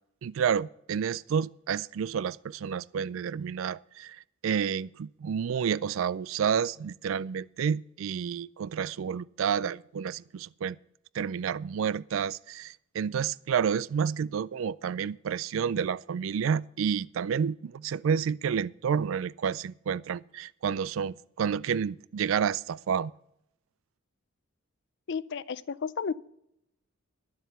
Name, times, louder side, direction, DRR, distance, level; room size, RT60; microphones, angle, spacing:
voice 1, 0.2-10.8 11.1-23.1, right 7 dB, 70° right, 0.3 m, -30 dB
voice 2, 25.1-26.1, left 6 dB, 55° left, 0.5 m, -32 dB
10.5 x 7.6 x 6.8 m
head